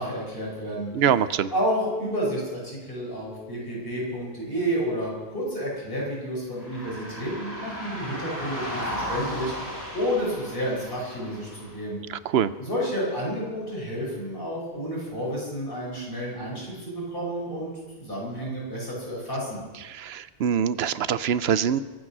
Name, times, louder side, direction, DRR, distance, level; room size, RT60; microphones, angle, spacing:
voice 1, 0.0-0.9 1.5-12.0 12.6-19.6, equal, 60° left, -5 dB, 5.8 m, -30 dB
voice 2, 0.9-1.5 12.1-12.5 19.8-21.8, right 8 dB, 75° right, 15 dB, 0.9 m, -24 dB
sound 1, 6.6-11.8, equal, 40° left, 4.3 m, -35 dB
22.5 x 8.7 x 6.1 m, 1.3 s
omnidirectional pair, 1.1 m